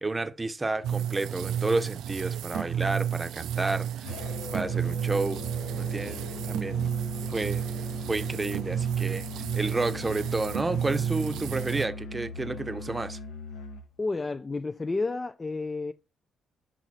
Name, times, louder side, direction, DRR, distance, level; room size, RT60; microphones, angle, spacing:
voice 1, 0.0-4.1 4.5-5.4 5.8-6.2 6.5-6.9 7.3-7.6 8.1-9.3 9.6-13.2, right 2 dB, 25° right, 0.7 m, -30 dB
sound 1, 0.8-11.9, right 9 dB, 75° right, 0.4 m, -31 dB
Musical instrument, 4.0-13.9, left 2 dB, 75° left, 0.9 m, -39 dB
voice 2, 14.0-15.9, left 3 dB, 30° left, 0.4 m, -31 dB
6.0 x 3.9 x 4.1 m
hypercardioid pair, 45°, 0 cm